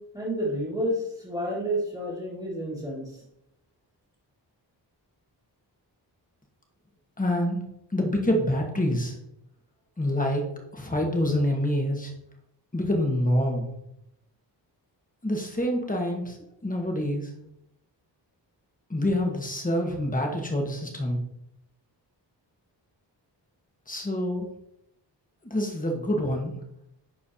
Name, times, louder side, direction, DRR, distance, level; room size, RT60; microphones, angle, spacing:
voice 1, 0.0-3.2, equal, 10° right, -10 dB, 1.9 m, -30 dB
voice 2, 7.2-7.6 7.9-9.2 10.0-10.4 10.7-12.1 12.7-13.7 15.2-16.4 16.6-17.3 18.9-21.2 23.9-24.5 25.4-26.5, left 1 dB, 20° left, 2 dB, 1.4 m, -26 dB
11.0 x 4.5 x 2.8 m, 0.80 s
wide cardioid pair, 120°, 43 cm